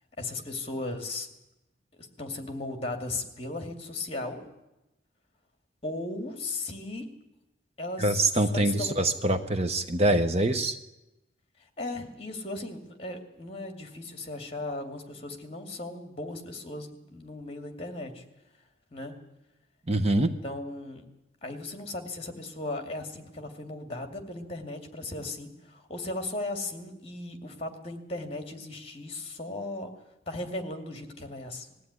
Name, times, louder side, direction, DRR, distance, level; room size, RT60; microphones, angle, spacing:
voice 1, 0.2-1.3 2.0-4.4 5.8-7.1 7.8-8.2 8.5-9.0 11.8-18.2 18.9-19.1 20.2-21.0 21.4-29.9 30.3-31.7, left 2 dB, 30° left, 6 dB, 2.4 m, -37 dB
voice 2, 8.0-10.8 19.9-20.3, right 2 dB, 35° right, 9 dB, 1.0 m, -24 dB
20.5 x 14.5 x 9.7 m, 0.95 s
head